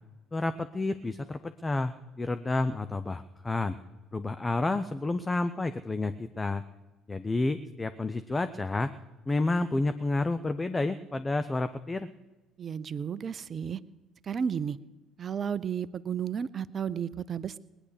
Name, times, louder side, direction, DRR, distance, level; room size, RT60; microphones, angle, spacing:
voice 1, 0.3-3.7 4.1-6.6 7.1-8.9 9.3-12.1, left 2 dB, 20° left, 11 dB, 0.7 m, -30 dB
voice 2, 12.6-13.8 14.2-14.8 15.2-17.6, right 7 dB, 45° right, 17 dB, 0.7 m, -33 dB
19.5 x 10.0 x 6.8 m, 1.1 s
hypercardioid pair, 55°, 0 cm